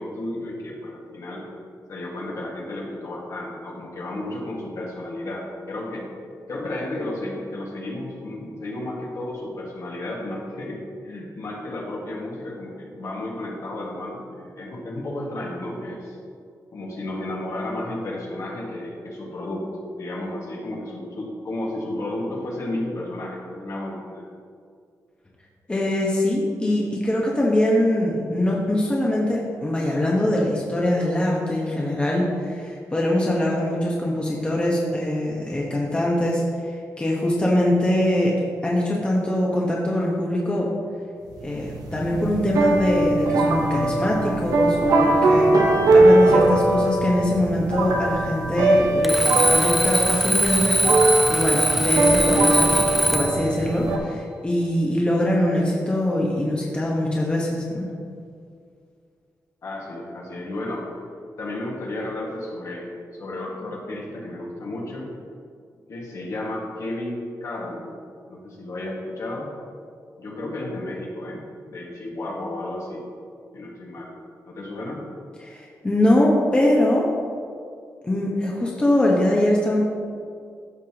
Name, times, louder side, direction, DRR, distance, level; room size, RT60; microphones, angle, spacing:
voice 1, 0.0-1.5 1.9-6.1 6.5-16.2 16.7-24.3 59.6-61.0 61.4-65.1 65.9-68.0 68.3-69.5 70.2-71.4 71.7-73.1 73.5-74.1 74.5-75.0, left 1 dB, 55° left, -3 dB, 1.8 m, -32 dB
voice 2, 25.7-38.3 38.6-40.7 41.4-45.5 45.9-57.9 75.4-77.1 78.0-79.8, left 1 dB, 15° left, -3 dB, 1.2 m, -23 dB
sound 1, 41.4-54.0, right 2 dB, 85° right, 1.0 m, -20 dB
Alarm, 49.0-53.5, equal, ahead, 0.5 m, -21 dB
14.0 x 5.8 x 3.0 m, 2.2 s
wide cardioid pair, 130°, 6 cm